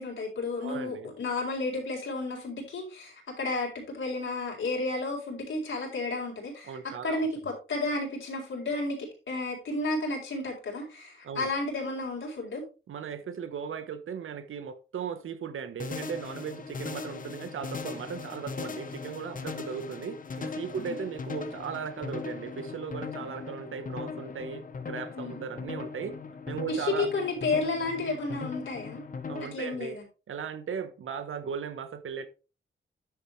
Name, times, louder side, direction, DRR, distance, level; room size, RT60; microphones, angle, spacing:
voice 1, 0.0-9.0 9.3-12.6 20.8-21.0 25.2-25.4 26.7-29.0 29.5-30.0, left 2 dB, 70° left, 4.2 m, -32 dB
voice 2, 0.6-1.1 6.7-7.3 11.2-11.6 12.9-26.2 26.5-27.1 29.3-30.0 30.3-32.3, right 7 dB, 75° right, 1.1 m, -37 dB
sound 1, 15.8-29.4, left 5 dB, 40° left, 1.0 m, -39 dB
10.5 x 7.1 x 3.2 m
wide cardioid pair, 165°, 21 cm